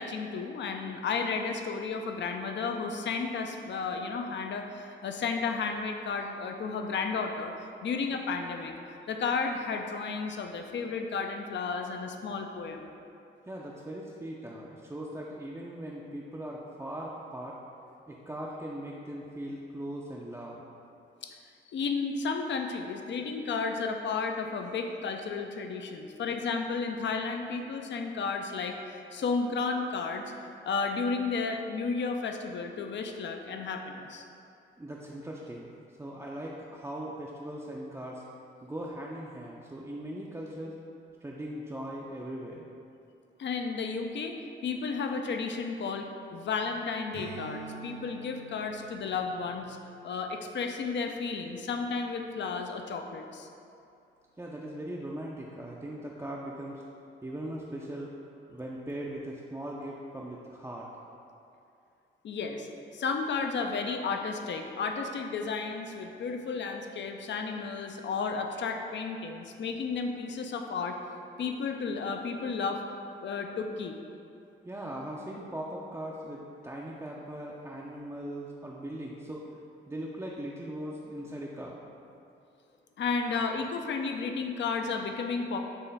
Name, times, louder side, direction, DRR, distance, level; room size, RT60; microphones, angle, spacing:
voice 1, 0.0-7.5 7.8-8.8 9.1-12.9 21.2-21.3 21.7-30.2 30.6-34.2 43.4-44.4 44.6-49.8 50.0-53.5 62.2-62.7 62.9-71.0 71.4-72.8 73.2-74.0 83.0-85.6, left 4 dB, 60° left, 4 dB, 0.5 m, -33 dB
voice 2, 13.5-17.6 18.1-20.6 34.8-38.2 38.6-40.8 41.2-42.7 54.4-56.8 57.2-58.1 58.5-60.9 74.6-79.4 79.9-81.8, right 1 dB, 15° right, -4 dB, 0.4 m, -39 dB
Strum, 47.1-51.9, right 4 dB, 50° right, 0.9 m, -48 dB
4.5 x 3.0 x 3.4 m, 2.6 s
supercardioid pair, 50°, 21 cm